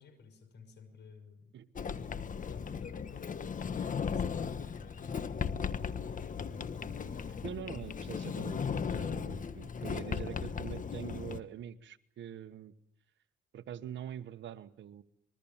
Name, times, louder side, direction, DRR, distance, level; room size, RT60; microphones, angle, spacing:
voice 1, 0.0-1.6 2.5-6.8, left 5 dB, 60° left, 11 dB, 6.0 m, -52 dB
Sliding door, 1.8-11.4, left 6 dB, 40° left, 1.4 m, -37 dB
voice 2, 7.4-12.7 13.5-15.0, right 10 dB, 70° right, 13 dB, 1.3 m, -44 dB
26.0 x 22.0 x 7.3 m, 0.72 s
cardioid pair, 90°, 20 cm